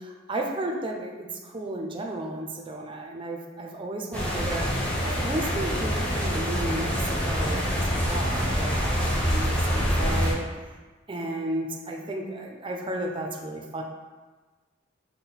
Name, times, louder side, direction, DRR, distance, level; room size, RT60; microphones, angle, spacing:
voice 1, 0.0-10.4 11.1-13.8, right 1 dB, 25° right, 1 dB, 0.5 m, -33 dB
sound 1, 4.1-10.3, equal, 5° left, 0.8 m, -26 dB
5.6 x 2.1 x 4.0 m, 1.3 s
head